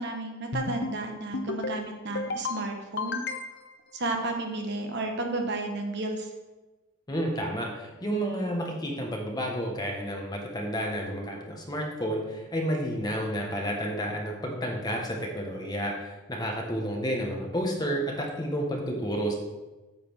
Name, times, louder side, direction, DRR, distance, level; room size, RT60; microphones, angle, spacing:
voice 1, 0.0-3.2 3.9-6.3, right 2 dB, 55° right, 3 dB, 1.1 m, -32 dB
sound 1, 0.5-1.0 1.3-1.8 2.2-2.6 3.0-3.7, left 3 dB, 55° left, 0.7 m, -32 dB
voice 2, 7.1-19.3, equal, 20° left, 0 dB, 1.4 m, -31 dB
9.4 x 4.2 x 7.1 m, 1.1 s
head